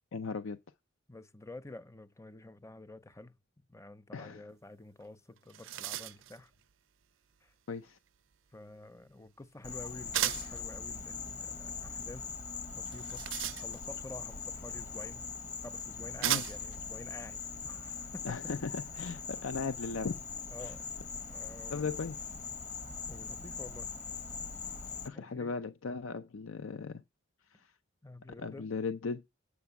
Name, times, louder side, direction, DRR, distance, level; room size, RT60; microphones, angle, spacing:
voice 1, 0.1-0.6 4.1-4.4 7.7-8.0 16.2-16.4 18.2-20.2 20.6-20.7 21.7-22.2 25.0-27.0 27.5-27.7 28.4-29.3, left 4 dB, 80° left, 0.6 m, -37 dB
voice 2, 1.1-6.5 7.4-7.5 8.5-12.3 12.7-13.2 13.5-15.3 15.6-17.4 17.6-18.4 20.5-20.8 21.3-21.9 23.1-23.9 25.1-25.5 28.0-28.7, left 2 dB, 15° left, 0.6 m, -49 dB
sound 1, 5.0-5.1 5.4-6.4 10.1-10.6 12.8-14.0 15.1-15.2 16.2-16.8, right 13 dB, 70° right, 0.5 m, -35 dB
Insect, 9.6-25.1, left 5 dB, 35° left, 1.1 m, -41 dB
8.3 x 6.0 x 7.0 m
head